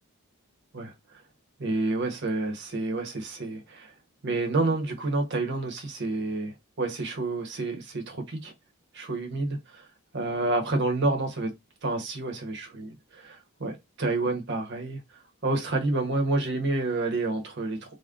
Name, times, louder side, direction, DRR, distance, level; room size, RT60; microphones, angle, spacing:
voice 1, 1.6-3.9 4.2-6.5 6.8-8.5 8.9-9.8 10.1-11.5 11.8-15.0 15.4-17.8, right 2 dB, 50° right, 0.8 m, -29 dB
3.5 x 2.1 x 2.3 m
head